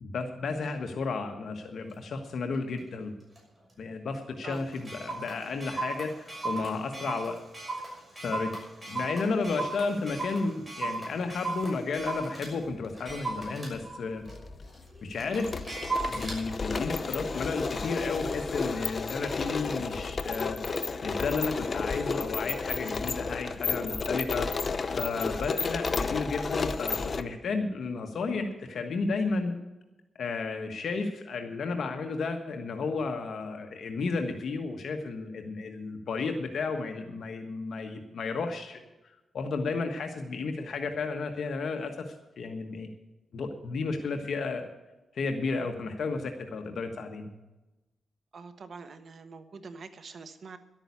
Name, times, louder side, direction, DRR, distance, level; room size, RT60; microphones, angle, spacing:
voice 1, 0.0-3.1 3.8-7.4 8.1-8.5 8.9-14.2 15.0-15.6 16.1-20.6 21.0-24.5 24.9-29.5 30.2-42.9 43.3-44.7 45.1-47.3, left 4 dB, 65° left, 5 dB, 1.3 m, -33 dB
Clock, 1.9-2.0 2.5-2.8 3.4-3.5 3.7-3.8 4.1-4.2 4.5-12.5 12.9-16.4, right 3 dB, 15° right, 6.3 m, -36 dB
sound 1, 11.4-11.7 12.7-13.5 13.7-13.8 14.3-27.2, left 4 dB, 40° left, 0.8 m, -32 dB
voice 2, 48.3-50.6, right 4 dB, 55° right, 10 dB, 1.1 m, -44 dB
12.0 x 8.9 x 8.5 m, 1.0 s
cardioid pair, 95°, 0 cm